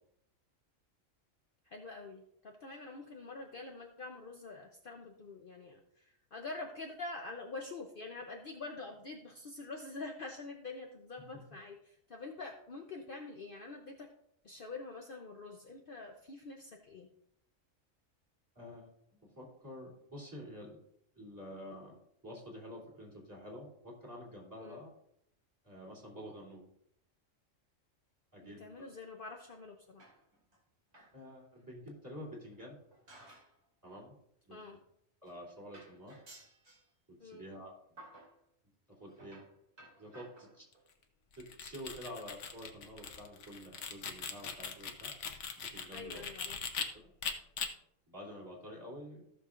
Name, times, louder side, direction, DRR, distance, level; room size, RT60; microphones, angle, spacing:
voice 1, 1.6-14.1 14.4-17.1 24.6-24.8 28.4-30.0 34.5-34.8 37.2-37.5 45.9-46.6, left 3 dB, 50° left, 2 dB, 0.9 m, -46 dB
voice 2, 18.5-18.9 19.2-20.8 21.1-21.9 22.2-24.9 25.6-26.6 28.3-28.9 31.1-32.8 33.8-34.2 34.5-34.6 35.2-36.2 37.1-37.7 38.9-39.4 40.0-40.6 41.3-45.1 45.5-46.2 46.9-47.1 48.1-49.3, equal, 15° right, -3 dB, 3.0 m, -48 dB
sound 1, 30.0-30.6 30.9-31.2 31.6-31.7 32.5-33.6 33.9-34.1 34.9-35.0 35.3-35.4 35.7-36.9 37.4-37.6 38.0-38.4 39.1-40.9 41.5-41.7 42.0-42.1 42.4-42.5 42.7-42.8, right 1 dB, 55° right, 2.9 m, -57 dB
sound 2, 41.3-46.9 47.2-47.7, left 6 dB, 65° left, 1.2 m, -40 dB
15.5 x 6.5 x 2.5 m, 0.74 s
omnidirectional pair, 1.3 m